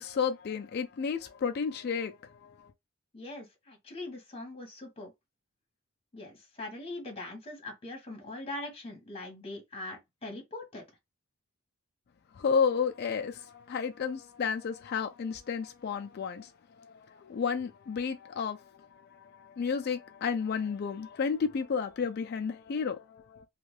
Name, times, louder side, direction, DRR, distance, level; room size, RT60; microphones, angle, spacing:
voice 1, 0.0-2.7 12.3-23.5, left 6 dB, 45° left, 0.3 m, -32 dB
voice 2, 3.1-5.1 6.1-10.8, left 2 dB, 25° left, 1.2 m, -42 dB
2.6 x 2.3 x 3.1 m
head